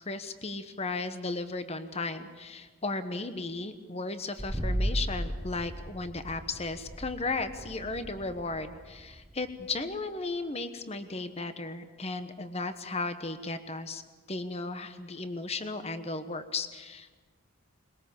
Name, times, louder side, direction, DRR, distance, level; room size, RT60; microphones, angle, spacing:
voice 1, 0.0-14.0 14.3-17.1, left 3 dB, 30° left, 10 dB, 1.1 m, -35 dB
sound 1, 4.4-10.0, equal, ahead, 1.4 m, -36 dB
22.0 x 21.0 x 7.1 m, 1.4 s
head